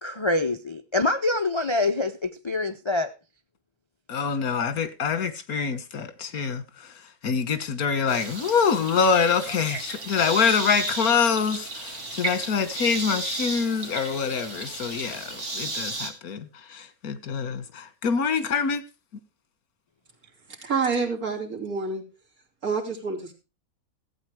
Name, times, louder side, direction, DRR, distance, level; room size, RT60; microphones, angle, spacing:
voice 1, 0.0-3.1 9.6-9.8, left 2 dB, 35° left, 0.4 m, -25 dB
voice 2, 4.1-6.9 7.2-18.8, left 6 dB, 80° left, 1.8 m, -25 dB
sound 1, 8.1-16.1, right 3 dB, 50° right, 2.7 m, -34 dB
voice 3, 20.6-22.0 22.6-23.3, right 4 dB, 75° right, 3.4 m, -27 dB
14.5 x 8.6 x 4.8 m
omnidirectional pair, 1.5 m